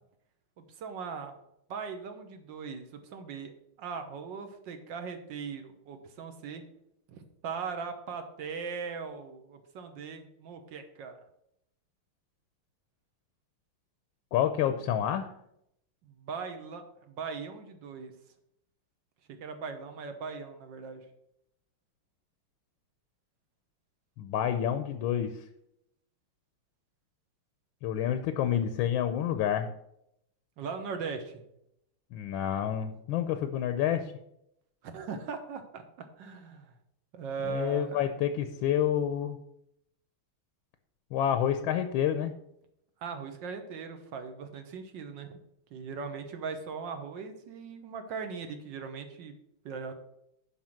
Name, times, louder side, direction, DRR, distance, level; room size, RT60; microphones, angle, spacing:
voice 1, 0.6-1.3 1.7-6.6 7.1-11.2 16.0-18.1 19.4-21.0 30.6-31.4 34.8-36.7 37.1-38.1 43.0-45.4 45.7-49.3 49.6-49.9, right 5 dB, 60° right, 7 dB, 1.6 m, -39 dB
voice 2, 14.3-15.3 24.2-25.3 27.8-29.7 32.1-34.0 37.4-39.4 41.1-42.3, left 9 dB, 75° left, 9 dB, 1.3 m, -28 dB
7.3 x 5.6 x 6.3 m, 0.77 s
omnidirectional pair, 2.4 m